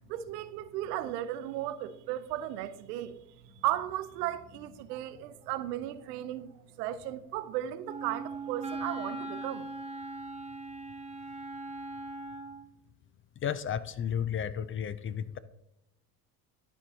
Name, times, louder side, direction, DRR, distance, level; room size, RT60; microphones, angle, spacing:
voice 1, 0.1-3.2 3.6-6.5 6.8-9.7, right 13 dB, 85° right, 0.6 m, -35 dB
Wind instrument woodwind instrument, 7.8-12.7, right 2 dB, 15° right, 1.4 m, -40 dB
voice 2, 13.4-15.4, left 8 dB, 30° left, 0.3 m, -33 dB
12.5 x 4.6 x 2.8 m
hypercardioid pair, 65°, 47 cm